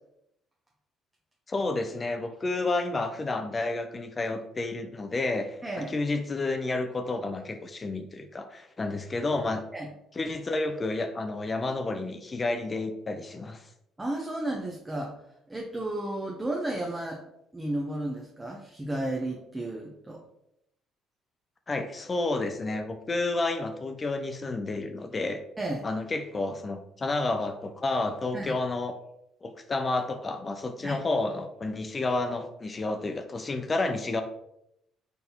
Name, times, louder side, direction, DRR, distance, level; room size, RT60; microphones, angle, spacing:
voice 1, 1.5-5.6 5.9-9.6 10.2-13.7 21.7-25.4 25.8-29.0 29.4-34.2, left 2 dB, 30° left, 7 dB, 0.5 m, -30 dB
voice 2, 5.6-5.9 9.7-9.9 14.0-15.1 15.5-17.2 17.5-20.2 25.6-25.9 28.3-28.5 30.8-31.0, right 1 dB, 15° right, -1 dB, 0.8 m, -33 dB
3.9 x 3.8 x 2.8 m, 0.80 s
hypercardioid pair, 50°, 0 cm